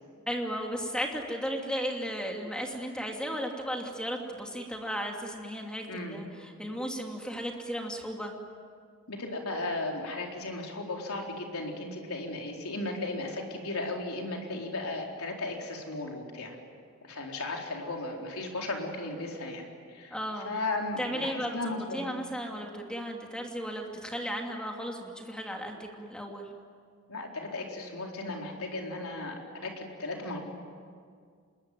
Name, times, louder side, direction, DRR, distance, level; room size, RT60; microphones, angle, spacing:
voice 1, 0.3-8.3 20.1-20.5 21.0-26.5, equal, 5° left, 1 dB, 2.8 m, -35 dB
voice 2, 5.9-6.2 9.1-16.6 17.0-20.2 20.5-22.0 27.1-30.4, left 2 dB, 75° left, 1 dB, 4.2 m, -35 dB
26.0 x 21.5 x 9.5 m, 2.1 s
head